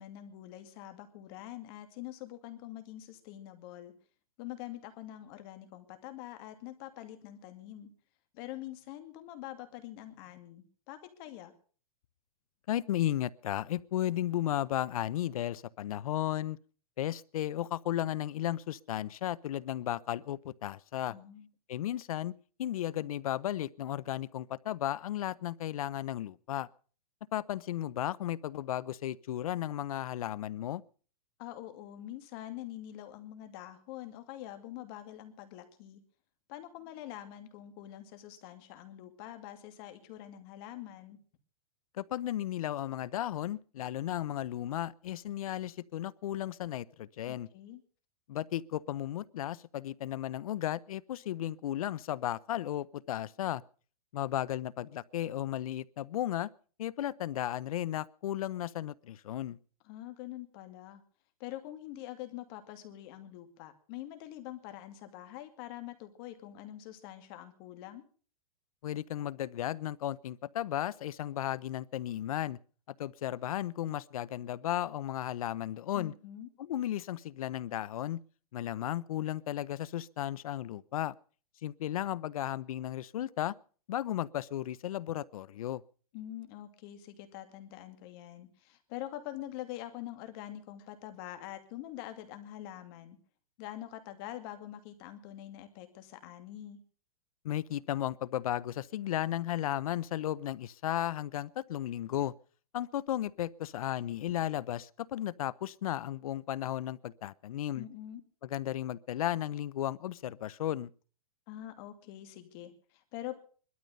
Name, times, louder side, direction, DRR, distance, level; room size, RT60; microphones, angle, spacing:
voice 1, 0.0-3.9 4.4-7.9 8.3-11.5 21.1-21.5 31.4-36.0 36.5-41.2 47.3-47.8 59.8-61.0 61.4-68.0 75.9-76.5 86.1-93.2 93.6-96.8 107.7-108.2 111.5-113.4, left 13 dB, 40° left, 2.4 m, -45 dB
voice 2, 12.7-16.6 17.0-21.1 21.7-22.3 22.6-26.7 27.3-30.8 42.0-47.5 48.3-53.6 54.1-56.5 56.8-59.6 68.8-72.6 73.0-76.1 76.6-78.2 78.5-81.1 81.6-83.5 83.9-85.8 97.4-102.3 102.7-107.9 108.5-110.9, left 12 dB, 70° left, 0.7 m, -34 dB
20.0 x 12.5 x 5.4 m
hypercardioid pair, 150°, 19 cm